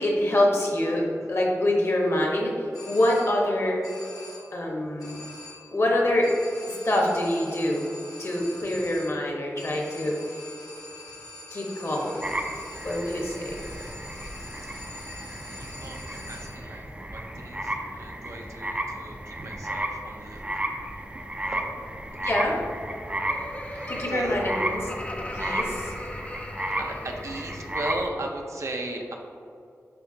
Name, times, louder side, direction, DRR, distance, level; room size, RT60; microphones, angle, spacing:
voice 1, 0.0-3.8 4.5-5.1 5.7-6.3 6.7-7.8 8.2-10.2 11.5-12.3 12.8-13.6 22.2-22.6 23.9-24.9 25.3-25.9, left 1 dB, 50° left, -1 dB, 1.2 m, -25 dB
sound 1, 2.7-3.6 3.8-4.6 5.0-5.8 6.2-16.8, left 2 dB, 90° left, 1.1 m, -44 dB
sound 2, 12.2-28.1, right 1 dB, 20° right, 0.5 m, -34 dB
voice 2, 14.8-15.2 15.5-20.4 21.4-21.9 22.2-22.3 23.7-24.4 25.7-29.2, right 2 dB, 60° right, 1 dB, 0.7 m, -37 dB
Laughter, 22.9-28.0, left 1 dB, 25° left, 0.5 m, -39 dB
10.0 x 3.6 x 2.8 m, 2.6 s
wide cardioid pair, 100°, 6 cm